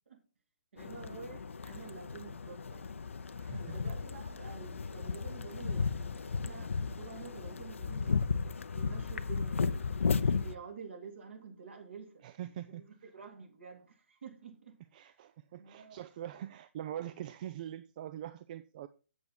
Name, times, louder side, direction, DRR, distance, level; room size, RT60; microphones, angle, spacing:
voice 1, 0.7-2.9 3.6-8.3 8.7-9.7 10.1-12.2 12.7-14.8 15.6-16.0, right 6 dB, 65° right, 3.0 m, -49 dB
sound 1, 0.8-10.5, left 5 dB, 70° left, 0.7 m, -34 dB
voice 2, 3.4-3.8 12.2-12.8 14.9-18.9, right 11 dB, 40° right, 0.4 m, -43 dB
8.1 x 7.1 x 4.5 m
figure-of-eight pair, 135°, 7 cm